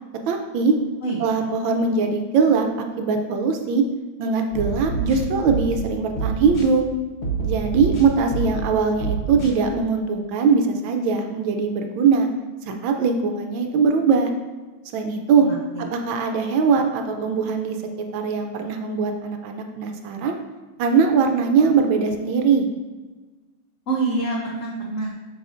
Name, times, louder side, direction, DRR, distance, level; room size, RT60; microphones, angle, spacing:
voice 1, 0.3-0.7 1.2-2.7 3.0-3.8 4.2-6.8 7.4-12.3 12.7-14.3 14.9-15.5 16.1-17.8 18.1-20.4 20.8-22.7, right 5 dB, 75° right, 4 dB, 1.2 m, -21 dB
voice 2, 1.0-1.5 15.4-15.8 23.9-25.1, right 3 dB, 85° left, -2 dB, 0.7 m, -27 dB
sound 1, 4.5-5.8 6.2-6.7 7.2-8.7 9.0-9.5, right 5 dB, 45° left, 1.0 m, -26 dB
7.6 x 5.5 x 2.5 m, 1.3 s
omnidirectional pair, 2.4 m